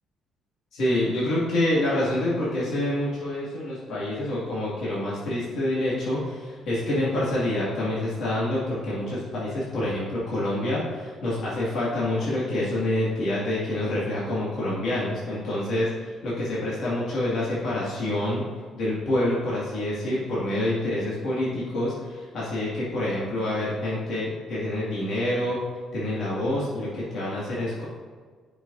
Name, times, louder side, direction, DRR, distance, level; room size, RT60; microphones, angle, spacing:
voice 1, 0.7-18.4 18.7-25.6 25.9-27.8, left 1 dB, 60° left, -8 dB, 2.1 m, -27 dB
10.0 x 6.1 x 2.7 m, 1.5 s
cardioid pair, 140°, 0 cm